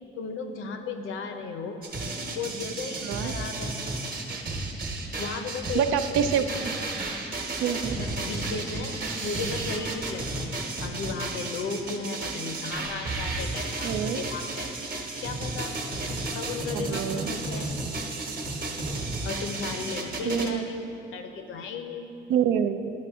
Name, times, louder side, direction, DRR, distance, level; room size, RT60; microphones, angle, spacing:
voice 1, 0.2-1.8 2.3-3.8 5.2-6.0 6.4-6.5 7.9-14.7 15.2-15.7 16.3-17.8 19.2-20.8 21.1-22.1, left 4 dB, 80° left, 6 dB, 0.7 m, -35 dB
sound 1, 1.8-20.5, right 2 dB, 45° right, 1.1 m, -33 dB
voice 2, 3.0-3.3 5.7-6.5 7.6-8.0 13.8-14.2 16.7-17.3 20.2-20.6 22.3-22.9, right 8 dB, 90° right, 9 dB, 0.4 m, -26 dB
10.5 x 5.9 x 3.6 m, 2.7 s
cardioid pair, 90°, 20 cm